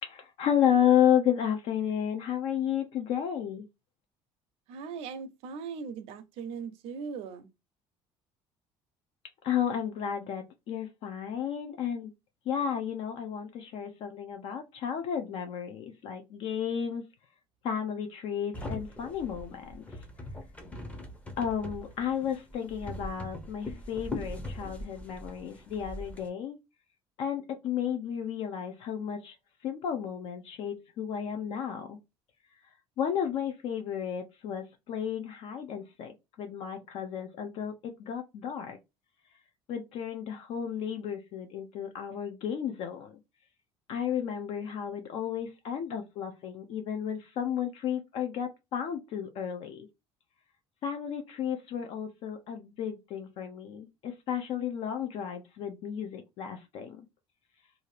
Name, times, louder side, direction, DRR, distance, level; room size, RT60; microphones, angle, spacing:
voice 1, 0.0-3.6 9.4-12.1 12.5-17.0 17.6-19.9 21.4-26.6 27.2-29.4 29.6-32.0 33.0-38.8 39.7-43.2 43.9-49.9 50.8-57.0, left 9 dB, 60° left, 0.5 m, -32 dB
voice 2, 4.7-7.5, right 5 dB, 70° right, 0.5 m, -39 dB
sound 1, 18.5-26.3, left 1 dB, 10° left, 0.6 m, -41 dB
2.7 x 2.4 x 3.1 m
cardioid pair, 140°, 11 cm